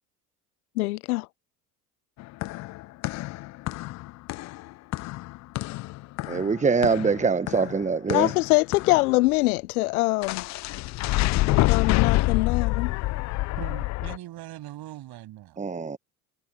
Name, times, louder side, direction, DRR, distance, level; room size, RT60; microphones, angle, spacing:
voice 1, 0.8-1.3 8.1-10.4 11.5-12.9, left 22 dB, 70° left, 0.8 m, -24 dB
sound 1, 2.2-9.2 10.2-14.2, left 20 dB, 40° left, 0.5 m, -27 dB
voice 2, 6.3-8.3 15.6-16.0, right 5 dB, 15° right, 1.1 m, -24 dB
voice 3, 13.6-15.6, right 15 dB, 50° right, 7.8 m, -40 dB
hypercardioid pair, 65°, 47 cm